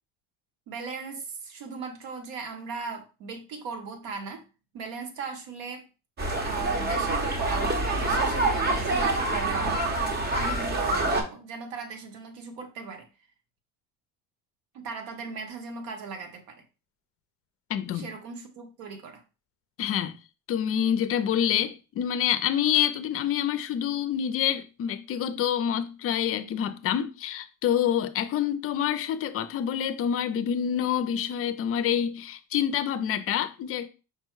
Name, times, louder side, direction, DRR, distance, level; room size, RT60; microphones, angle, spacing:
voice 1, 0.7-4.4 4.7-5.9 6.4-10.0 10.3-13.1 14.7-16.6 17.9-19.2, right 5 dB, 85° right, 1.2 m, -38 dB
sound 1, 6.2-11.2, right 2 dB, 30° right, 1.0 m, -26 dB
voice 2, 17.7-18.1 19.8-20.1 20.5-33.9, left 9 dB, 40° left, 0.5 m, -27 dB
5.3 x 2.2 x 4.6 m
cardioid pair, 135°, 34 cm